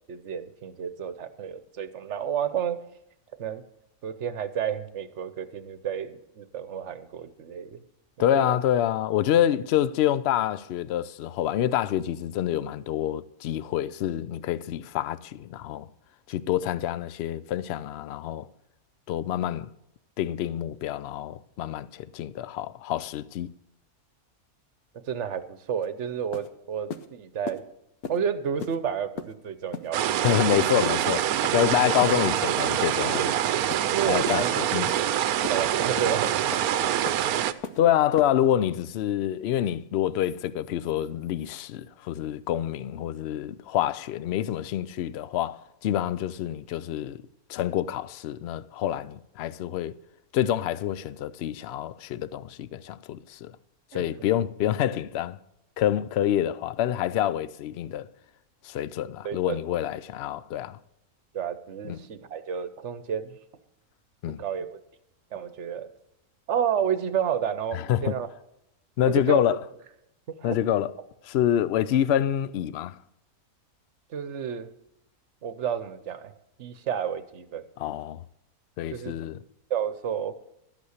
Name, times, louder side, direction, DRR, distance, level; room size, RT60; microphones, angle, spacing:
voice 1, 0.1-2.8 3.4-3.6 4.0-7.8 8.3-8.6 24.9-27.6 28.1-30.0 33.9-34.7 35.4-36.9 53.9-54.1 59.2-59.6 61.3-63.4 64.4-64.8 65.3-65.9 66.5-68.3 69.0-69.6 70.4-70.6 74.1-74.7 75.4-76.3 76.6-77.6 78.9-79.2 79.7-80.4, right 8 dB, 55° right, 1.0 m, -31 dB
voice 2, 8.2-15.9 16.3-18.5 19.1-19.7 20.2-23.5 30.2-31.3 31.5-33.3 34.1-34.9 37.8-47.2 47.5-49.9 50.3-53.5 53.9-55.4 55.8-58.1 58.6-60.8 61.8-62.0 64.2-64.4 67.7-68.2 69.0-69.6 70.4-70.9 71.2-73.0 77.8-78.2 78.8-79.4, left 11 dB, 65° left, 0.6 m, -27 dB
sound 1, 25.8-25.9 26.3-26.5 26.9-27.1 27.5-27.6 28.0-28.2 28.6-28.8 29.2-29.3 29.7-29.9 30.3-30.5 30.9-31.0 31.4-31.6 32.0-32.2 32.6-32.8 33.1-33.3 33.7-33.9 34.3-34.4 34.9-35.0 35.4-35.6 36.0-36.1 36.5-36.7 37.1-37.2 37.6-37.8 38.2-38.3, left 6 dB, 85° left, 1.4 m, -36 dB
sound 2, 29.9-37.5, right 11 dB, 80° right, 1.1 m, -25 dB
12.5 x 8.3 x 6.5 m
omnidirectional pair, 1.6 m